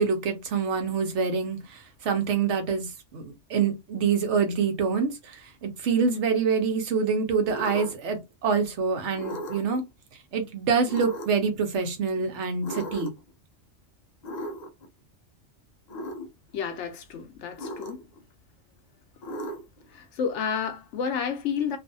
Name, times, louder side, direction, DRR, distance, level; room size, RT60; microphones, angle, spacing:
voice 1, 0.0-9.8 10.3-13.1, right 5 dB, 75° right, 1.0 m, -26 dB
sound 1, 7.5-8.1 9.1-9.8 10.9-11.5 12.6-13.3 14.2-14.9 15.9-16.3 17.6-18.2 19.2-19.9, equal, 50° left, 0.5 m, -36 dB
voice 2, 16.5-18.0 19.9-21.8, left 7 dB, 80° left, 0.9 m, -30 dB
2.6 x 2.4 x 2.6 m
omnidirectional pair, 1.2 m